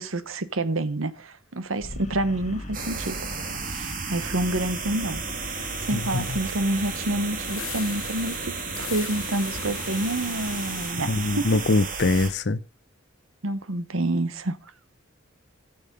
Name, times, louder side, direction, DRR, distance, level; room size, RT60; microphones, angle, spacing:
voice 1, 0.0-3.2 3.6-11.5 13.4-14.6, right 1 dB, 75° right, 1.1 m, -28 dB
sound 1, 1.8-8.1, left 1 dB, 35° left, 1.4 m, -41 dB
sound 2, 2.7-12.3, right 4 dB, 40° right, 1.7 m, -33 dB
sound 3, 5.6-10.9, left 9 dB, 70° left, 1.0 m, -40 dB
voice 2, 5.9-6.3 11.1-12.6, left 2 dB, 55° left, 0.7 m, -23 dB
15.0 x 7.0 x 5.3 m
head